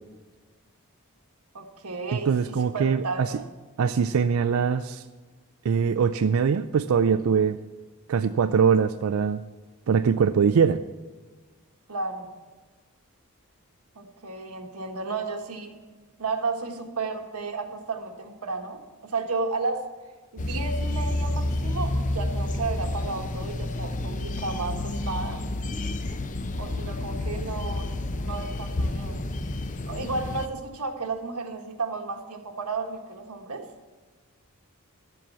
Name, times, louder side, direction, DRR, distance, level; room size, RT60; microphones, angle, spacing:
voice 1, 1.5-3.5 11.9-12.3 13.9-15.7 16.2-19.8 20.3-25.4 26.6-29.3 29.9-33.7, right 4 dB, 85° right, 4 dB, 1.4 m, -33 dB
voice 2, 2.1-3.3 3.8-5.0 5.6-7.6 8.1-9.4 9.9-10.8, right 6 dB, 70° right, 11 dB, 0.4 m, -22 dB
sound 1, 20.4-30.5, left 2 dB, 35° left, 0.6 m, -30 dB
12.0 x 7.7 x 6.8 m, 1.4 s
head